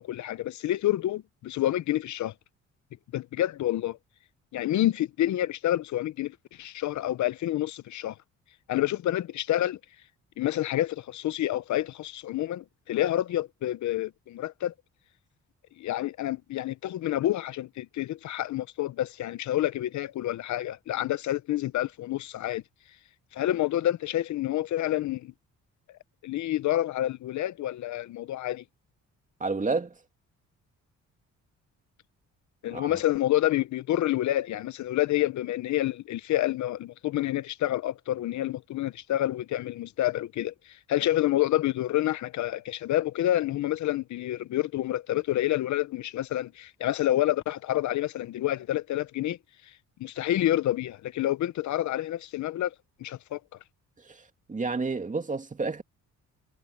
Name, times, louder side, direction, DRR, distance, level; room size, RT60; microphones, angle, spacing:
voice 1, 0.0-2.3 3.1-4.0 4.5-8.2 8.7-9.8 10.4-14.7 15.8-22.6 23.3-25.3 25.9-28.6 32.6-49.4 49.6-49.7 50.0-52.7 53.0-53.4, left 14 dB, 70° left, 0.8 m, -28 dB
voice 2, 29.4-29.9 32.7-32.9 54.1-54.2 54.5-55.8, right 4 dB, 25° right, 2.5 m, -30 dB
cardioid pair, 90°, 30 cm